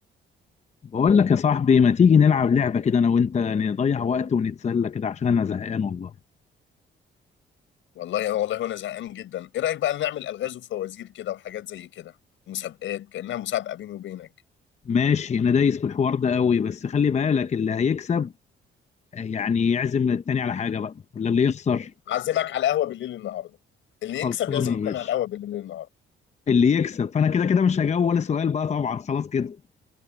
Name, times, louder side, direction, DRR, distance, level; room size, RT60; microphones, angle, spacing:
voice 1, 0.9-6.1 14.9-18.3 19.1-21.9 24.2-25.1 26.5-29.6, left 6 dB, 35° left, 0.8 m, -22 dB
voice 2, 8.0-12.1 12.5-14.3 22.1-23.6 24.0-25.9, left 12 dB, 75° left, 5.4 m, -29 dB
cardioid pair, 90°, 20 cm